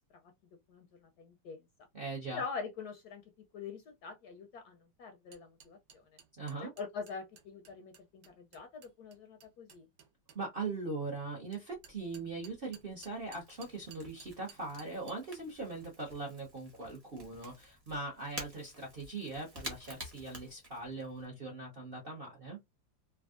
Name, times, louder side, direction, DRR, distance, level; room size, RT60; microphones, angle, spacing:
voice 1, 0.7-1.6 2.3-6.1 6.6-9.9, left 5 dB, 70° left, 0.9 m, -44 dB
voice 2, 1.9-2.4 6.4-6.7 10.3-22.6, right 3 dB, 50° right, 0.6 m, -40 dB
sound 1, 5.3-10.4 11.5-15.1, right 7 dB, 70° right, 1.3 m, -56 dB
Crackle / Crack, 11.7-21.2, equal, 15° right, 0.8 m, -51 dB
3.4 x 2.3 x 2.4 m
omnidirectional pair, 2.1 m